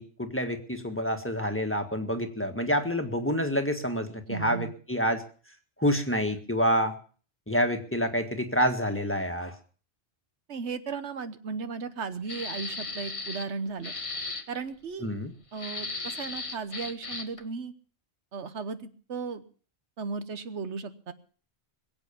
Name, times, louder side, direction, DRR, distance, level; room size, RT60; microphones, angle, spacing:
voice 1, 0.0-5.2 5.8-6.9 7.5-9.5 15.0-15.3, equal, 10° left, 5 dB, 1.6 m, -28 dB
voice 2, 4.3-4.7 10.5-13.9 14.5-15.1 15.5-17.7 18.3-19.4 20.0-21.1, right 5 dB, 85° right, 11 dB, 1.4 m, -36 dB
sound 1, 12.3-13.5 13.8-14.4 15.5-17.4, left 3 dB, 30° left, 1.1 m, -36 dB
22.0 x 8.3 x 7.0 m, 0.42 s
omnidirectional pair, 1.1 m